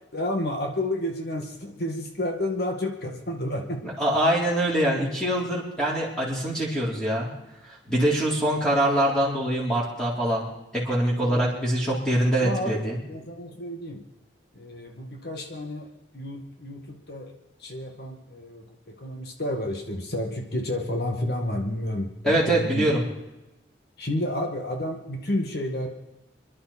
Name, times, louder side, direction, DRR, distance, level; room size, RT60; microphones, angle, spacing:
voice 1, 0.1-3.8 11.1-11.4 12.4-14.0 14.5-17.3 17.6-18.6 19.0-22.9 24.0-25.9, left 1 dB, 60° left, 2 dB, 2.1 m, -30 dB
voice 2, 3.8-7.3 7.9-10.5 10.7-13.0 22.2-23.0, right 1 dB, 5° left, -6 dB, 3.8 m, -24 dB
27.0 x 11.5 x 4.4 m, 0.97 s
head